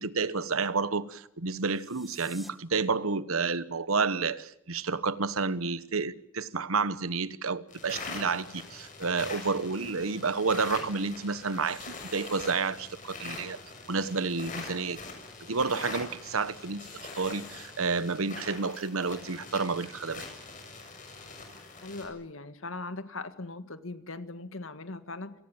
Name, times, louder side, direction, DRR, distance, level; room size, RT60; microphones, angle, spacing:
voice 1, 0.0-13.6 13.9-15.0 15.5-16.9 17.2-20.3, right 4 dB, 90° right, 1.2 m, -30 dB
sound 1, 1.5-2.5, equal, ahead, 1.6 m, -51 dB
sound 2, 7.7-22.1, left 3 dB, 40° left, 6.8 m, -43 dB
voice 2, 21.8-25.3, left 3 dB, 75° left, 1.8 m, -39 dB
28.0 x 18.5 x 9.0 m
head